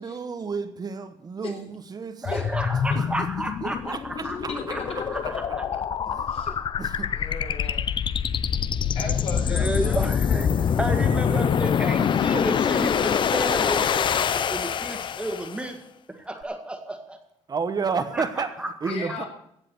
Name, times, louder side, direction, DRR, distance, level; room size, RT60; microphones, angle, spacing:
voice 1, 0.0-2.3 2.9-3.1 3.4-5.6 6.1-6.5 6.8-7.3 12.0-12.5 17.5-18.5 18.8-19.2, right 5 dB, 35° right, 9 dB, 1.1 m, -32 dB
voice 2, 2.2-4.4 4.7-6.2 6.5-6.6 9.5-15.8 16.1-17.2 18.1-18.3 18.6-18.7, right 1 dB, 10° right, 5 dB, 1.9 m, -32 dB
sound 1, 2.3-15.7, left 7 dB, 45° left, 0.6 m, -25 dB
voice 3, 4.5-4.8 6.3-6.5 7.1-7.9 8.9-10.1 18.9-19.3, left 4 dB, 60° left, 2 dB, 4.3 m, -35 dB
16.0 x 7.6 x 7.7 m, 0.75 s
cardioid pair, 115°, 11 cm